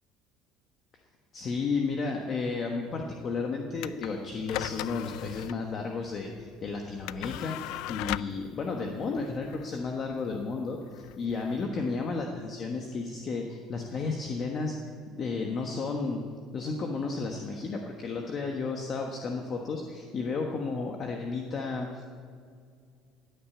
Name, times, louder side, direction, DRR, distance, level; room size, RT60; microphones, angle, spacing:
voice 1, 1.3-14.8 15.1-16.2 16.5-22.0, left 4 dB, 35° left, 2 dB, 1.3 m, -33 dB
sound 1, 3.8-12.2, left 16 dB, 75° left, 0.4 m, -39 dB
17.0 x 9.2 x 8.4 m, 2.1 s
cardioid pair, 165°, 0 cm